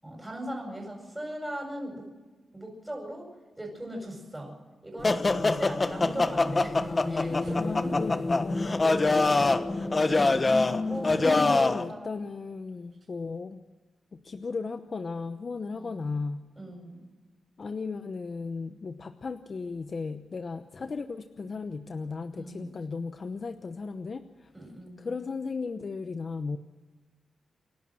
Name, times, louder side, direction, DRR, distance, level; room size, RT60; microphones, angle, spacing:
voice 1, 0.0-2.1 2.5-3.3 3.6-4.6 4.8-8.0 8.5-10.2 10.8-11.5 11.9-12.1 15.7-16.1 16.6-17.0 22.4-22.8 24.5-25.1, right 1 dB, 15° right, -3 dB, 7.6 m, -39 dB
sound 1, 4.3-4.4 7.3-8.1 9.4-9.7 10.1-10.4 10.7-11.5 12.9-13.4 14.4-14.5, right 2 dB, 55° right, 7.4 m, -48 dB
sound 2, 5.0-11.8, left 3 dB, 30° left, 1.2 m, -25 dB
voice 2, 5.2-5.6 7.5-8.5 10.5-10.8 11.3-13.6 14.1-16.5 17.6-24.5 25.0-26.6, left 4 dB, 45° left, 8 dB, 0.9 m, -35 dB
28.0 x 12.0 x 7.7 m, 1.3 s
cardioid pair, 95°, 0 cm